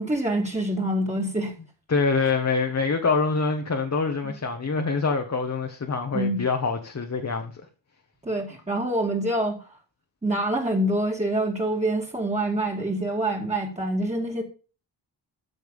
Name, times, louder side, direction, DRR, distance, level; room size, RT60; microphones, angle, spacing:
voice 1, 0.0-1.5 2.2-2.3 4.2-4.3 6.1-6.4 8.2-9.7 10.2-14.4, right 1 dB, 15° right, 2.4 m, -26 dB
voice 2, 1.9-7.6, left 4 dB, 40° left, 1.5 m, -25 dB
13.5 x 5.9 x 7.3 m
wide cardioid pair, 155°, 43 cm